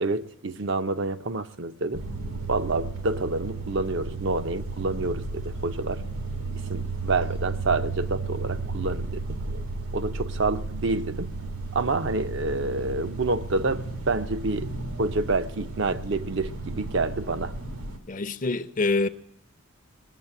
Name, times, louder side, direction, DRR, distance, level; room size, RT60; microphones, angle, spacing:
voice 1, 0.0-2.0 2.5-6.0 6.7-9.2 9.9-11.3 11.7-14.7 15.0-17.5, right 3 dB, 55° right, 0.7 m, -28 dB
sound 1, 1.9-18.0, right 3 dB, 85° right, 1.7 m, -34 dB
voice 2, 18.1-19.1, left 3 dB, 35° left, 0.6 m, -25 dB
20.0 x 7.3 x 8.9 m
head